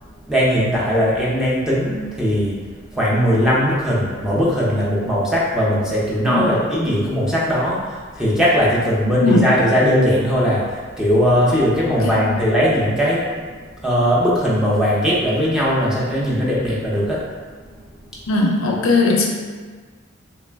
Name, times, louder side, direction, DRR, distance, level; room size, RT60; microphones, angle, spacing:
voice 1, 0.3-13.5 13.8-17.2, equal, 5° right, -7 dB, 0.5 m, -19 dB
voice 2, 11.9-12.3 18.3-19.3, left 3 dB, 80° left, 0 dB, 0.5 m, -18 dB
3.1 x 2.1 x 3.3 m, 1.5 s
head